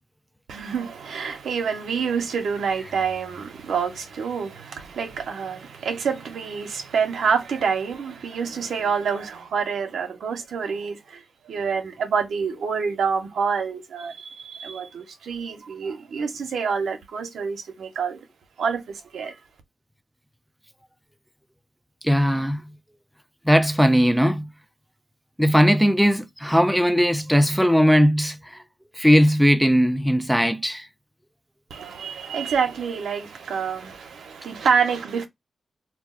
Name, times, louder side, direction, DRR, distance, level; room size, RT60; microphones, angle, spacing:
voice 1, 0.5-18.3 18.6-19.3 31.7-35.3, right 6 dB, 90° right, 0.7 m, -27 dB
voice 2, 22.0-22.6 23.5-24.5 25.4-28.4 29.0-30.9, equal, ahead, 0.4 m, -18 dB
2.3 x 2.2 x 3.6 m
cardioid pair, 70°, 0 cm